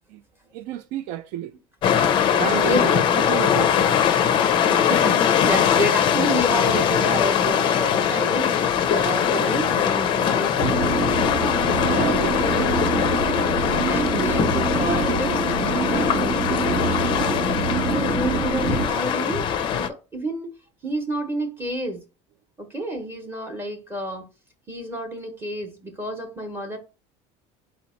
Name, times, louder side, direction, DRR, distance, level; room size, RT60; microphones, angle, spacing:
voice 1, 0.5-1.5 2.3-4.0 11.9-12.9, right 13 dB, 65° right, 0.4 m, -31 dB
sound 1, 1.8-19.9, left 8 dB, 35° left, 0.5 m, -21 dB
voice 2, 4.7-11.0 11.8-12.3 13.1-13.4 13.8-17.6 17.9-20.5 20.8-22.0 22.6-24.3 24.7-26.8, right 1 dB, 15° right, 0.8 m, -30 dB
sound 2, 10.6-18.9, right 4 dB, 90° right, 1.7 m, -26 dB
4.2 x 2.9 x 4.2 m
cardioid pair, 165°, 15 cm